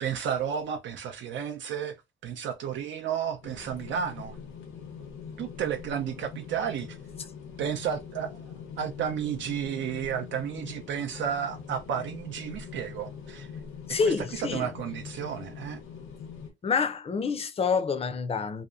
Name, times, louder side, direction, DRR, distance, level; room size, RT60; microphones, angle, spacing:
voice 1, 0.0-2.0 2.2-4.4 5.4-7.0 7.6-8.5 8.8-13.5 14.0-15.8, right 8 dB, 70° right, 0.5 m, -32 dB
sound 1, 3.4-16.5, left 6 dB, 90° left, 0.8 m, -43 dB
voice 2, 13.9-14.7 16.6-18.6, left 5 dB, 30° left, 0.5 m, -27 dB
2.7 x 2.1 x 2.4 m
cardioid pair, 90°, 20 cm